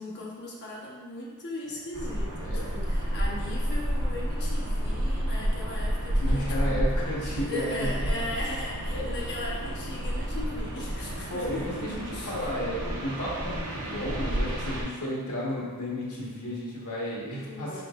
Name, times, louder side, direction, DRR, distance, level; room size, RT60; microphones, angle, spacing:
voice 1, 0.0-6.9 7.3-11.8 12.1-12.3 17.4-17.8, left 1 dB, 50° left, -5 dB, 0.8 m, -38 dB
sound 1, 1.9-14.8, equal, 75° right, 0.6 m, -30 dB
voice 2, 6.2-8.1 8.9-9.1 11.3-11.7 12.1-17.8, equal, 80° left, -5 dB, 1.0 m, -33 dB
3.7 x 3.6 x 2.3 m, 1.5 s
head